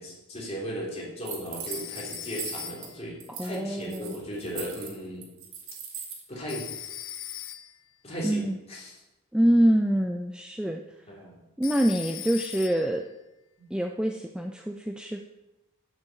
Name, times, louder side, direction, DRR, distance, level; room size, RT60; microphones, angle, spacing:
voice 1, 0.0-5.3 6.3-6.7 8.0-9.0 11.0-11.4 13.6-13.7, equal, 30° left, -3 dB, 3.0 m, -36 dB
sound 1, 1.2-2.9 3.2-3.6 3.8-6.2, right 7 dB, 85° right, 2.1 m, -39 dB
Telephone, 1.7-3.1 6.5-7.9 11.6-13.0, left 12 dB, 70° left, 0.6 m, -40 dB
voice 2, 3.3-4.1 8.2-8.6 9.3-10.8 11.6-13.1 13.7-15.2, equal, 5° right, 4 dB, 0.4 m, -25 dB
7.9 x 7.0 x 7.0 m, 0.99 s
head